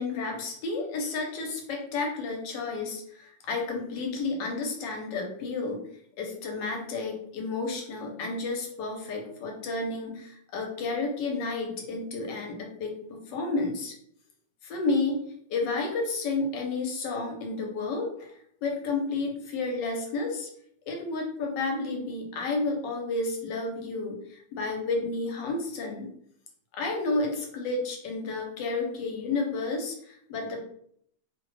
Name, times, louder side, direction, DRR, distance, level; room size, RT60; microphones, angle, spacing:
voice 1, 0.0-5.8 6.2-13.9 14.6-15.2 15.5-18.3 18.6-20.5 20.9-26.1 26.7-30.6, left 3 dB, 85° left, 1 dB, 1.3 m, -31 dB
3.0 x 2.1 x 3.1 m, 0.67 s
omnidirectional pair, 1.9 m